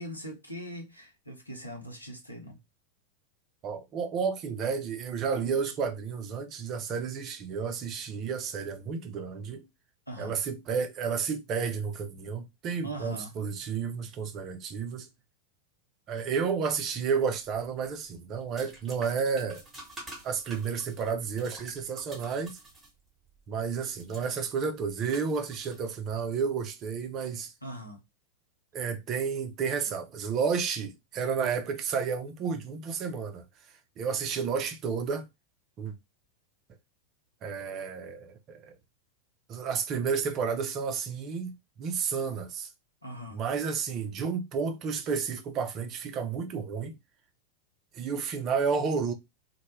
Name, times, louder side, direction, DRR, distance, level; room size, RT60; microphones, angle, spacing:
voice 1, 0.0-2.6 10.1-10.4 12.8-13.3 27.6-28.0 29.8-29.9 43.0-43.4, right 1 dB, 90° left, 0.7 m, -41 dB
voice 2, 3.6-9.6 10.2-15.1 16.1-19.6 20.2-22.6 23.5-27.5 28.7-33.4 34.0-35.3 35.8-35.9 37.4-38.8 39.5-41.5 41.8-42.7 43.3-47.0 47.9-49.1, right 6 dB, 35° right, 0.5 m, -31 dB
sound 1, 17.4-26.3, right 2 dB, 15° right, 1.0 m, -50 dB
2.1 x 2.1 x 3.0 m
figure-of-eight pair, 90°, 0 cm